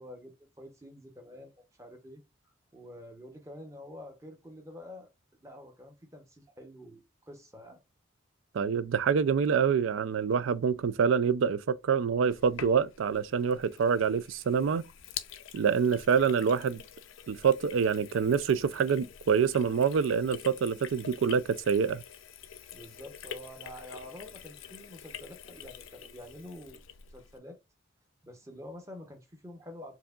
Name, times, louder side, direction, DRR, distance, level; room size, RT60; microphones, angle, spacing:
voice 1, 0.0-2.2 2.7-5.1 5.4-7.8 22.7-26.8 27.1-27.6 28.2-30.0, left 1 dB, 15° right, 0.8 m, -47 dB
voice 2, 8.5-14.8 15.5-16.8 17.3-22.0, right 6 dB, 75° right, 0.4 m, -26 dB
Sink (filling or washing), 12.3-27.4, left 8 dB, 80° left, 0.5 m, -47 dB
4.7 x 2.8 x 2.3 m
head